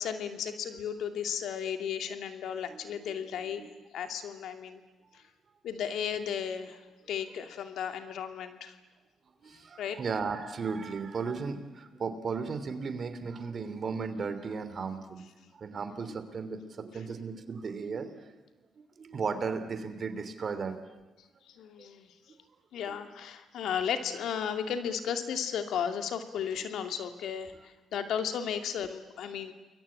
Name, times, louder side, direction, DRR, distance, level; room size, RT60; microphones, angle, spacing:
voice 1, 0.0-3.7 3.9-4.8 5.1-5.2 5.6-6.8 7.1-8.8 9.8-10.0 21.5-22.1 22.7-29.5, left 8 dB, 75° left, 7 dB, 2.5 m, -34 dB
voice 2, 2.7-3.2 3.4-3.7 9.4-15.2 15.5-18.4 19.0-20.8 21.8-21.9 22.9-23.0, right 5 dB, 45° right, 11 dB, 3.0 m, -36 dB
29.0 x 22.0 x 8.7 m, 1.1 s
cardioid pair, 90°, 0 cm